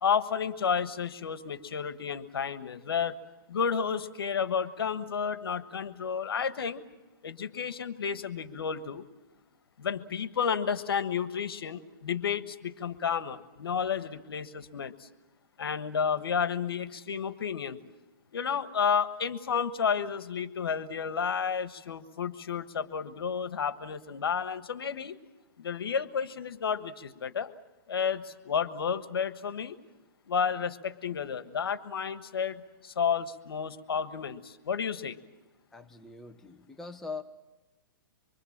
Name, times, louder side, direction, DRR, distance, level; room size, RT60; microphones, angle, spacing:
voice 1, 0.0-3.1 3.5-6.8 7.2-9.0 9.8-15.1 15.6-17.8 18.3-25.1 25.6-27.5 27.9-29.8 30.3-35.2, left 7 dB, 85° left, 12 dB, 1.4 m, -31 dB
voice 2, 35.7-37.2, left 4 dB, 5° left, 5 dB, 0.9 m, -42 dB
25.0 x 24.0 x 7.4 m, 1.1 s
hypercardioid pair, 150°, 12 cm